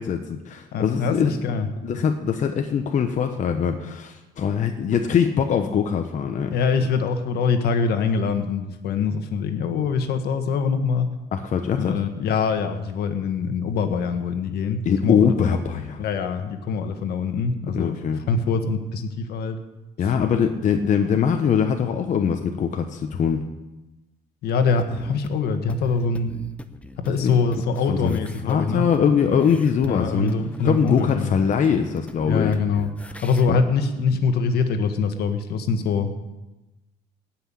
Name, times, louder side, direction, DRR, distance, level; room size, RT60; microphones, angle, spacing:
voice 1, 0.0-1.3 1.8-6.5 11.3-12.0 14.8-16.0 17.7-18.2 20.0-23.4 27.2-27.3 27.9-28.2 28.4-30.3 30.6-32.5 33.5-33.6, left 7 dB, 50° left, 5 dB, 1.0 m, -22 dB
voice 2, 0.7-1.7 6.5-11.1 11.8-15.3 16.0-17.9 18.3-19.6 21.0-21.1 24.4-26.3 27.0-28.9 29.5-29.6 29.8-31.3 32.2-32.9 33.2-36.1, left 5 dB, 70° left, 7 dB, 1.6 m, -24 dB
sound 1, 24.8-33.5, left 1 dB, 5° left, 0.8 m, -40 dB
17.0 x 6.0 x 8.6 m, 1.0 s
cardioid pair, 110°, 17 cm